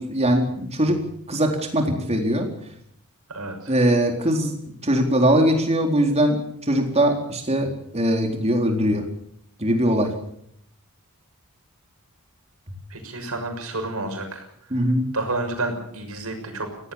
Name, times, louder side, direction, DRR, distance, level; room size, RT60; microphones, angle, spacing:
voice 1, 0.0-2.5 3.7-4.5 4.8-6.4 6.7-9.1 9.6-10.2 14.7-15.1, equal, 30° right, 3 dB, 4.0 m, -21 dB
voice 2, 3.3-3.7 12.9-14.5 15.1-16.9, right 2 dB, 75° right, 5 dB, 6.4 m, -30 dB
23.0 x 18.0 x 7.2 m, 0.71 s
head